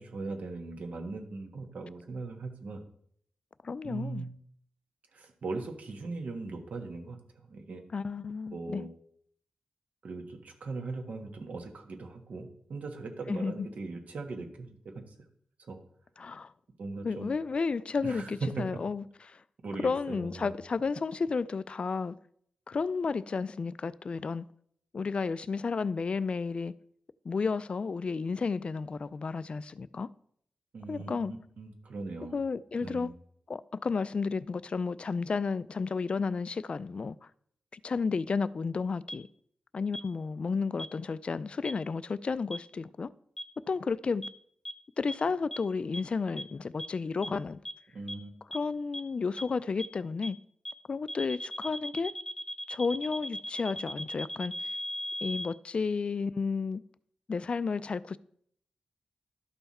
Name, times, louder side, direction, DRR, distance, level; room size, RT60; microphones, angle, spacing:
voice 1, 0.0-2.8 3.8-4.3 5.1-7.8 8.5-8.9 10.0-15.0 15.6-15.8 16.8-17.3 18.0-18.3 19.6-20.5 30.7-32.4 32.8-33.1 47.9-48.3, right 3 dB, 70° right, 1.5 m, -40 dB
voice 2, 3.6-4.3 7.9-8.9 13.3-13.7 16.2-16.5 17.0-19.4 19.8-22.1 22.7-24.4 24.9-26.7 27.3-30.1 30.9-31.3 32.3-33.1 33.5-37.2 37.7-39.3 39.7-43.1 43.7-44.3 45.0-47.6 48.5-50.4 50.9-52.1 52.7-54.5 55.2-56.8 57.3-58.2, left 4 dB, 45° left, 0.3 m, -32 dB
sound 1, 39.1-39.2 39.9-40.0 40.8-40.9 41.7-41.8 42.5-42.6 43.4-43.5 44.2-44.3 44.7-44.8 45.1-45.2 45.5-45.6 45.9-46.0 46.4-46.5 46.8-46.9 47.2-47.3 47.7-47.8 48.1-48.2 48.5-48.6 48.9-49.0 49.4-49.5 49.8-49.9 50.2-50.3 50.7-50.8 51.1-55.5, equal, 15° left, 0.8 m, -37 dB
12.0 x 5.7 x 4.2 m
wide cardioid pair, 120°, 3 cm